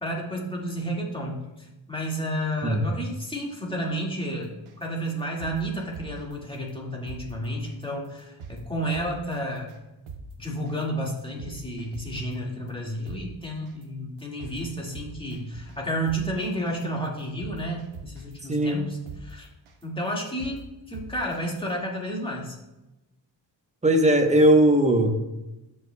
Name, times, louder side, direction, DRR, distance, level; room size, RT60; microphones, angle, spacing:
voice 1, 0.0-4.5 4.8-9.7 10.4-19.5 19.8-22.6, equal, 10° left, -2 dB, 2.0 m, -31 dB
sound 1, 4.7-4.8 5.2-6.3 6.7-6.8 7.1-7.2 7.7-7.8 8.2-8.6 8.9-9.4 9.7-9.8 10.1-10.2 10.7-10.8 11.2-12.3 12.7-12.8 13.1-13.2 13.7-13.8 14.2-14.6 14.9-15.8 16.1-16.2 16.7-16.8 17.2-18.3 18.7-18.8 19.1-19.2 19.7-19.8 20.2-20.6 20.9-21.4 21.7-21.8, right 6 dB, 85° right, 1.0 m, -41 dB
voice 2, 18.5-18.8 23.8-25.2, right 1 dB, 15° right, 4 dB, 1.0 m, -19 dB
14.5 x 5.5 x 2.3 m, 0.98 s
wide cardioid pair, 95°, 46 cm